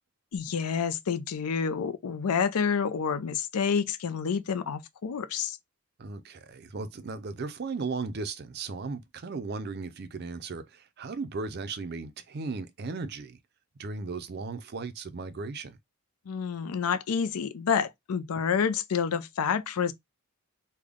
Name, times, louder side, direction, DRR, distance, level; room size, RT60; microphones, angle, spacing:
voice 1, 0.3-5.6 16.3-19.9, left 6 dB, 85° left, 0.5 m, -28 dB
voice 2, 6.0-13.4 13.8-15.8, right 4 dB, 45° right, 0.4 m, -36 dB
3.4 x 2.2 x 3.5 m
head